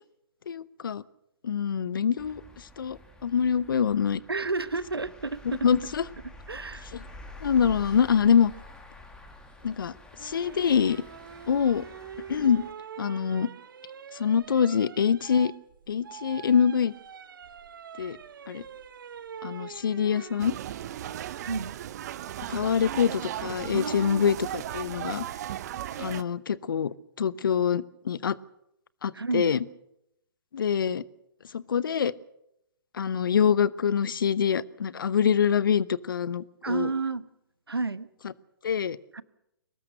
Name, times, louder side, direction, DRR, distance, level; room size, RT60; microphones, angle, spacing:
voice 1, 0.5-1.0 1.4-2.4 2.8-4.2 5.6-6.0 7.4-8.5 9.6-9.9 10.2-11.0 11.5-11.9 12.3-12.6 13.0-13.5 14.1-15.5 15.9-16.9 18.0-18.2 18.5-18.6 19.4-20.5 22.5-25.2 26.0-28.4 29.0-29.6 30.5-31.0 31.5-32.1 32.9-36.9 38.6-39.0, left 7 dB, 60° left, 19 dB, 0.9 m, -25 dB
sound 1, 2.2-12.7, left 2 dB, 5° left, 3.0 m, -48 dB
voice 2, 4.3-5.7 6.5-6.9 21.4-21.7 23.7-24.3 29.1-29.6 36.6-37.3 37.7-38.1 39.1-39.2, right 3 dB, 85° right, 15 dB, 1.1 m, -31 dB
sound 2, 10.2-21.4 23.0-23.5, right 8 dB, 60° right, 1.2 m, -45 dB
sound 3, 20.4-26.2, right 12 dB, 45° right, 0.9 m, -36 dB
23.0 x 19.5 x 6.7 m, 0.81 s
figure-of-eight pair, 130°, 12 cm